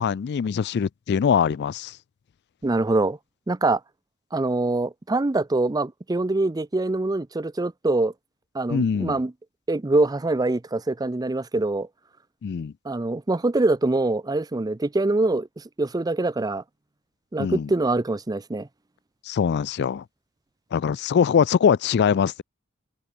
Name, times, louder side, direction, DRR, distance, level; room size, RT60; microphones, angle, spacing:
voice 1, 0.0-2.0 8.7-9.2 12.4-12.7 17.4-17.7 19.3-20.0 20.7-22.4, left 7 dB, 55° left, 0.3 m, -22 dB
voice 2, 2.6-3.2 3.5-3.8 4.3-8.1 8.5-9.3 9.7-11.9 12.8-16.6 17.3-18.7, right 2 dB, 20° right, 0.5 m, -24 dB
open air
head